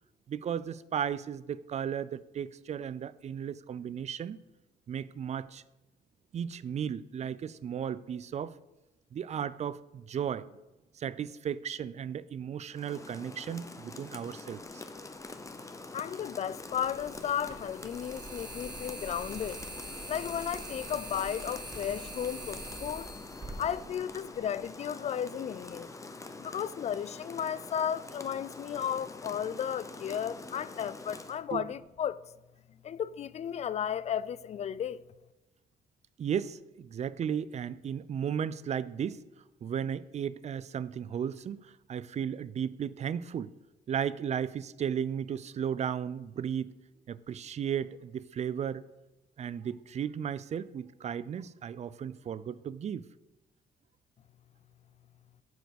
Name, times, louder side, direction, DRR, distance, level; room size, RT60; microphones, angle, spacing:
voice 1, 0.3-4.4 4.9-5.6 6.3-8.5 9.1-10.5 10.9-14.8 31.5-31.7 36.2-39.2 39.6-43.5 43.9-46.7 47.1-48.8 49.4-53.1, right 8 dB, 45° right, 0.4 m, -35 dB
Rain, 12.7-31.4, left 3 dB, 20° left, 0.8 m, -45 dB
sound 1, 15.2-15.3 16.6-24.6, right 2 dB, 25° right, 1.5 m, -44 dB
voice 2, 15.9-19.6 20.1-23.1 23.6-25.9 26.4-32.2 32.8-35.0, left 9 dB, 45° left, 0.4 m, -34 dB
8.1 x 4.7 x 6.4 m
cardioid pair, 85°, 16 cm